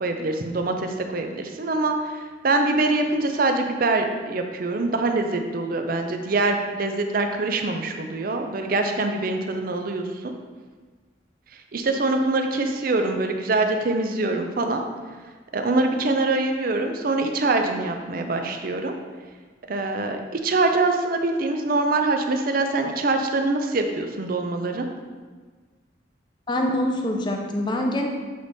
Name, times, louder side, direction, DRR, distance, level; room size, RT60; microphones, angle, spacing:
voice 1, 0.0-10.3 11.7-14.8 15.5-18.9 19.7-24.9, right 2 dB, 50° right, 5 dB, 0.5 m, -24 dB
voice 2, 26.5-28.1, left 1 dB, 25° left, 2 dB, 0.5 m, -24 dB
7.7 x 3.4 x 4.1 m, 1.4 s
head